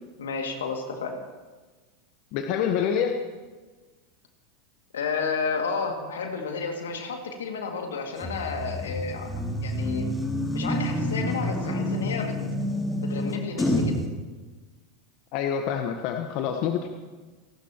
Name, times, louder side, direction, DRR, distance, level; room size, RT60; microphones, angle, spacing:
voice 1, 0.2-1.2 4.9-9.3 9.6-10.1 10.5-12.3 13.0-14.0, left 5 dB, 85° left, 3 dB, 2.2 m, -31 dB
voice 2, 2.3-3.2 15.3-16.9, left 8 dB, 55° left, 5 dB, 1.1 m, -26 dB
sound 1, 8.2-14.0, left 1 dB, 10° left, 2.6 m, -28 dB
29.5 x 12.5 x 3.0 m, 1.3 s
hypercardioid pair, 100°, 0 cm